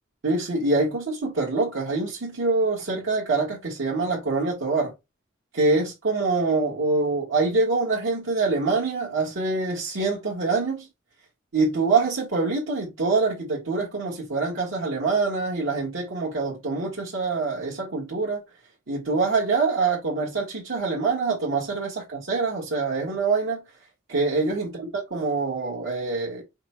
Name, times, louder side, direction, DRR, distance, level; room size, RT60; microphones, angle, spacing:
voice 1, 0.2-4.9 5.5-10.9 11.5-18.4 18.9-23.6 24.1-26.4, right 3 dB, 70° right, 1.3 m, -25 dB
5.1 x 2.1 x 4.2 m
head